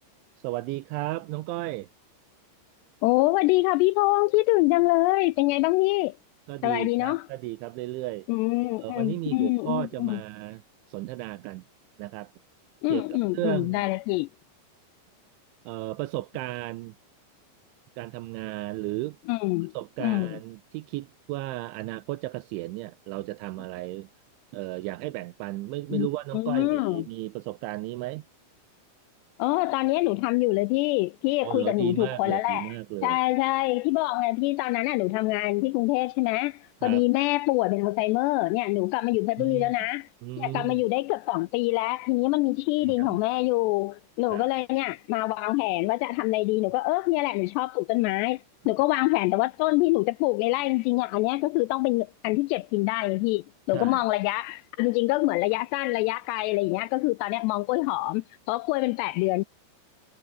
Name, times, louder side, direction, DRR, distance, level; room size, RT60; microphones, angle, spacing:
voice 1, 0.4-1.9 6.5-8.3 8.8-10.6 10.9-11.6 12.0-12.3 12.9-13.1 13.3-13.9 15.7-17.0 18.0-19.2 19.7-24.1 24.5-28.3 31.4-33.2 36.8-37.0 39.4-39.8 40.2-40.8 42.8-43.2 44.3-44.5 53.7-54.0, right 18 dB, 80° right, 3.2 m, -34 dB
voice 2, 3.0-6.1 6.6-7.2 8.3-10.2 12.8-14.3 19.3-19.7 20.0-20.4 25.9-26.1 26.3-27.0 29.4-32.8 33.0-40.1 40.4-59.4, left 21 dB, 90° left, 2.4 m, -25 dB
omnidirectional pair, 5.4 m